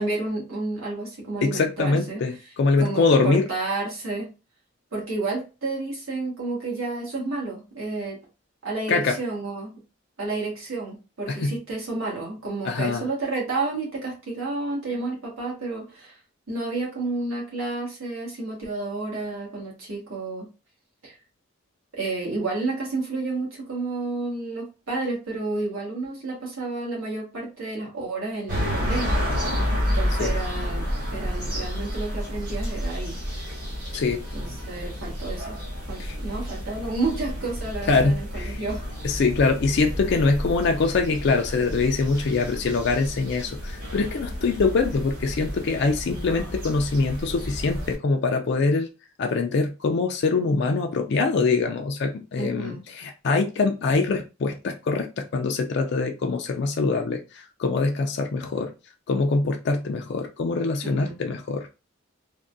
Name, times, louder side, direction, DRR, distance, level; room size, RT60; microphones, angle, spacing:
voice 1, 0.0-2.2 2.8-4.3 4.9-8.2 8.6-9.8 10.2-16.2 16.5-20.5 21.0-21.2 21.9-29.3 29.9-33.2 33.9-34.0 34.3-35.6 35.9-38.8 52.4-52.8 60.8-61.1, right 3 dB, 75° right, -3 dB, 1.4 m, -31 dB
voice 2, 1.4-3.5 8.9-9.2 11.3-11.5 12.6-13.1 30.2-30.3 33.9-34.2 36.0-36.2 37.9-38.6 39.0-48.9 49.2-58.7 59.1-61.7, left 3 dB, 55° left, 4 dB, 0.3 m, -24 dB
sound 1, 28.5-48.0, equal, 45° right, 1.2 m, -30 dB
3.5 x 2.2 x 2.5 m, 0.30 s
head